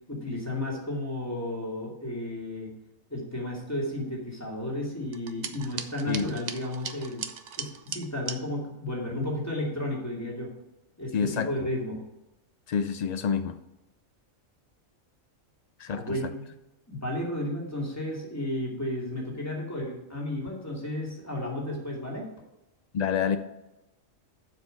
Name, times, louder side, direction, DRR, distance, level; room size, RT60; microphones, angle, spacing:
voice 1, 0.1-2.7 3.1-7.2 7.6-10.5 11.0-12.0 15.9-16.5 16.9-22.3, left 1 dB, 10° left, -3 dB, 2.6 m, -33 dB
sound 1, 5.1-8.4, right 6 dB, 45° right, 0.6 m, -38 dB
voice 2, 11.1-11.5 12.7-13.6 15.8-16.0 22.9-23.4, left 7 dB, 80° left, 10 dB, 0.3 m, -27 dB
7.4 x 6.0 x 6.5 m, 0.94 s
omnidirectional pair, 1.4 m